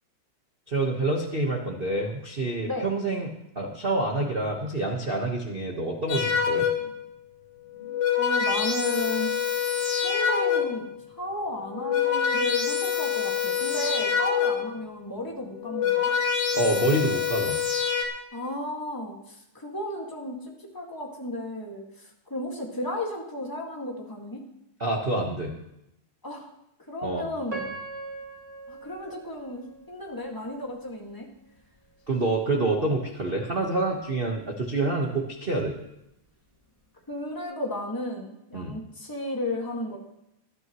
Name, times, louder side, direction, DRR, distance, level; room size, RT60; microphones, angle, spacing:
voice 1, 0.7-6.7 16.5-17.6 24.8-25.5 27.0-27.2 32.1-35.8 38.5-38.8, right 2 dB, 85° right, -1 dB, 0.5 m, -27 dB
sound 1, 6.1-7.0 7.7-10.9 11.6-14.8 15.5-18.0, left 7 dB, 55° left, 3.0 m, -26 dB
voice 2, 8.2-9.4 10.0-16.1 18.3-24.4 26.2-26.5 26.9-27.6 28.7-31.3 37.1-40.0, left 1 dB, 10° left, 0 dB, 1.3 m, -34 dB
Piano, 27.5-30.5 31.1-31.2 31.8-32.1, right 2 dB, 15° right, 2.3 m, -40 dB
20.0 x 12.5 x 3.1 m, 0.84 s
omnidirectional pair, 3.3 m